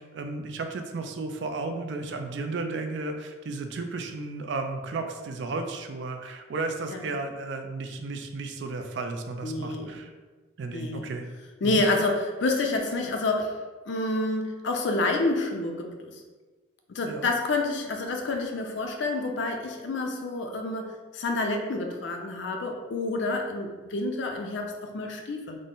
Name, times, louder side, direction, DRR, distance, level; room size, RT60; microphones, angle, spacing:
voice 1, 0.0-10.1 10.6-11.3 11.6-11.9 17.0-17.3, right 3 dB, 65° right, 5 dB, 0.4 m, -34 dB
voice 2, 9.4-10.0 10.7-11.1 11.6-13.6 13.9-15.9 16.9-25.6, left 2 dB, 65° left, 3 dB, 0.5 m, -28 dB
3.7 x 2.1 x 3.8 m, 1.3 s
head